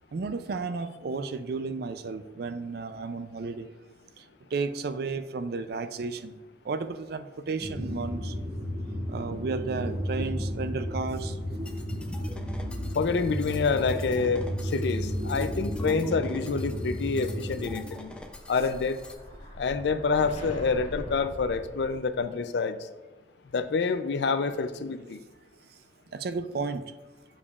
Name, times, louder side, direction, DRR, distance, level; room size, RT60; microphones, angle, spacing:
voice 1, 0.1-3.7 4.5-6.4 6.6-8.3 9.1-11.4 26.1-26.9, right 4 dB, 60° right, 11 dB, 0.4 m, -33 dB
sound 1, 7.6-17.7, equal, 30° right, 2.2 m, -33 dB
sound 2, 11.7-19.1, left 1 dB, 5° left, 0.5 m, -46 dB
voice 2, 12.9-18.1 18.5-19.0 19.6-22.8 23.5-25.2, left 4 dB, 70° left, 11 dB, 0.4 m, -27 dB
Explosion, 17.7-22.4, equal, 35° left, 1.5 m, -43 dB
7.2 x 6.8 x 2.4 m, 1.2 s
head